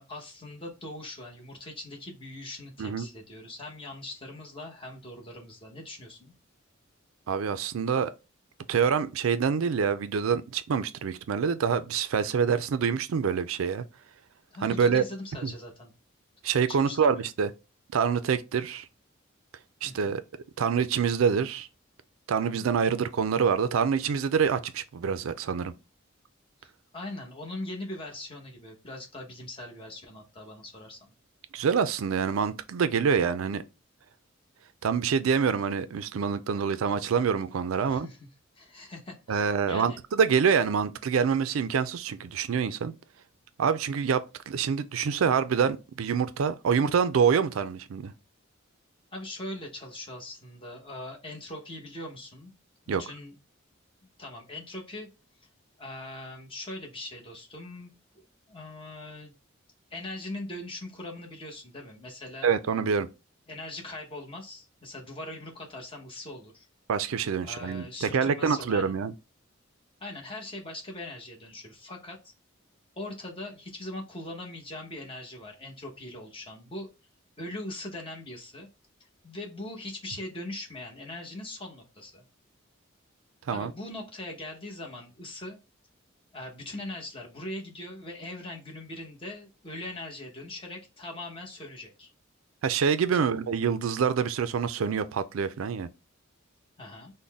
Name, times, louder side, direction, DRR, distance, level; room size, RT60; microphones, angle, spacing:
voice 1, 0.0-6.3 14.5-15.9 16.8-17.3 19.8-20.2 26.6-31.0 37.8-38.3 38.5-40.0 49.1-52.5 52.9-53.4 54.2-55.1 55.8-59.3 59.9-62.5 63.5-66.7 67.4-68.9 70.0-72.2 73.0-76.9 77.4-78.7 79.2-82.2 83.5-85.6 86.3-92.1 93.1-93.4 96.8-97.1, left 1 dB, 25° left, 1.0 m, -41 dB
voice 2, 7.3-8.1 8.7-13.8 14.6-15.0 15.4-15.5 16.4-17.5 17.9-18.9 19.8-20.2 20.6-21.7 22.3-25.7 31.5-33.6 34.8-38.1 39.3-42.9 43.6-48.1 52.9-53.0 62.4-63.1 66.9-69.1 83.5-83.7 92.6-95.9, right 6 dB, 85° right, 0.4 m, -26 dB
3.9 x 2.1 x 3.4 m
head